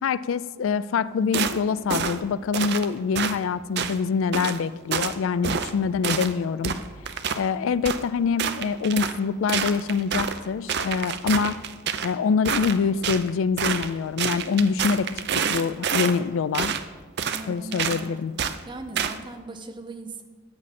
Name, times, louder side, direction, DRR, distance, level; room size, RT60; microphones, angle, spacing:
voice 1, 0.0-6.7 7.4-11.6 12.0-15.1 15.5-16.7 17.5-18.3, left 5 dB, 65° left, 17 dB, 0.3 m, -25 dB
sound 1, 1.3-1.6 1.9-2.2 2.5-2.9 3.2-3.3 3.8-4.0 4.3-4.6 4.9-5.1 5.4-5.7 6.0-6.3 6.6-7.4 7.8-8.0 8.4-9.2 9.5-10.4 10.7-12.1 12.4-13.2 13.6-13.9 14.2-16.2 16.5-16.8 17.2-17.4 17.7-18.0 18.4-18.6 19.0-19.2, right 7 dB, 50° right, 0.6 m, -27 dB
voice 2, 17.3-18.1 18.7-20.2, right 2 dB, 20° right, 5 dB, 0.8 m, -38 dB
13.5 x 8.5 x 4.2 m, 1.4 s
head